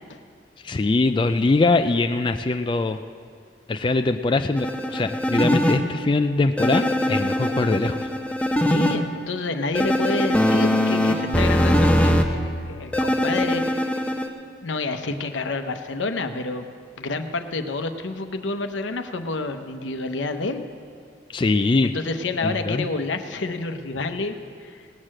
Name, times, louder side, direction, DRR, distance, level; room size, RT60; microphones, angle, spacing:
voice 1, 0.6-3.0 3.7-8.1 21.3-22.0 22.4-22.9, left 3 dB, 25° left, 8 dB, 0.3 m, -22 dB
sound 1, 4.6-5.8 6.6-9.0 9.8-12.2 12.9-14.3, equal, 5° left, 0.7 m, -21 dB
voice 2, 8.6-13.8 14.6-16.7 17.0-20.6 21.8-24.4 24.6-24.8, left 3 dB, 85° left, 7 dB, 0.8 m, -29 dB
18.0 x 6.5 x 7.5 m, 2.2 s
head